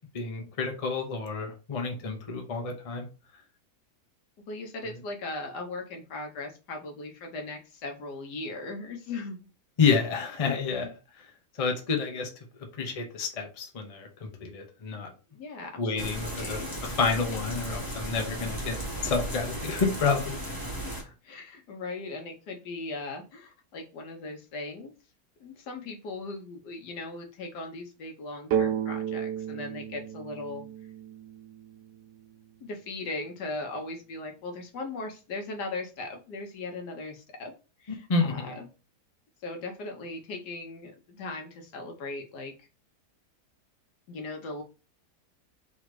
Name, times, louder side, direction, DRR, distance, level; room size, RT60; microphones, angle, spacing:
voice 1, 0.1-3.1 9.8-10.9 11.6-12.3 12.8-15.1 15.8-20.3 20.9-21.1 38.1-38.6, left 4 dB, 30° left, 3 dB, 0.7 m, -29 dB
voice 2, 4.5-9.4 10.8-10.9 15.3-16.7 21.2-24.9 25.4-30.6 32.6-37.5 37.8-38.7 39.4-42.7 44.1-44.6, left 2 dB, 80° left, 3 dB, 1.6 m, -38 dB
sound 1, 16.0-21.0, equal, 15° left, 1.1 m, -35 dB
sound 2, 28.5-32.2, right 9 dB, 85° right, 1.2 m, -32 dB
3.9 x 2.8 x 4.7 m, 0.32 s
omnidirectional pair, 1.8 m